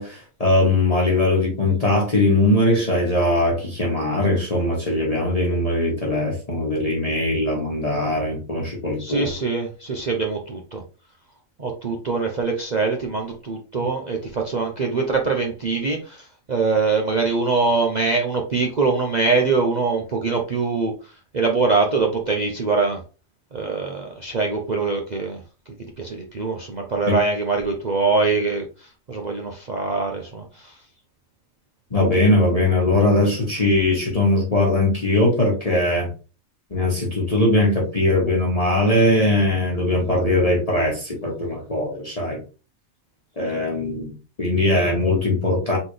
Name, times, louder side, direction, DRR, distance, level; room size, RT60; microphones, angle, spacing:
voice 1, 0.0-9.3 27.1-27.2 31.9-36.1 36.7-42.4 43.4-44.1 44.4-45.8, left 1 dB, 25° left, -3 dB, 1.3 m, -20 dB
voice 2, 9.0-10.8 11.6-20.9 21.3-23.0 23.5-25.4 26.0-28.7 29.1-30.8, right 4 dB, 45° right, 1 dB, 0.6 m, -23 dB
4.0 x 3.9 x 3.2 m, 0.34 s
omnidirectional pair, 1.5 m